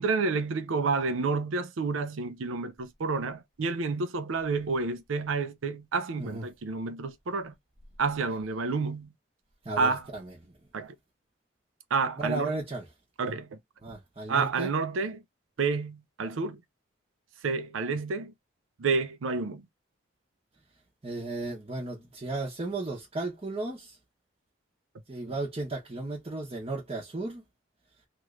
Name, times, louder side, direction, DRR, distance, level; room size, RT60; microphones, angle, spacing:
voice 1, 0.0-7.5 8.0-9.1 9.8-10.1 10.7-10.9 11.9-12.6 13.2-13.6 14.3-15.2 15.6-16.6 17.4-18.3 18.8-19.6, right 4 dB, 90° right, 0.5 m, -29 dB
voice 2, 9.6-10.3 12.2-12.8 13.8-14.7 21.0-23.9 25.1-27.4, right 2 dB, 30° right, 0.8 m, -34 dB
3.0 x 2.4 x 3.1 m
head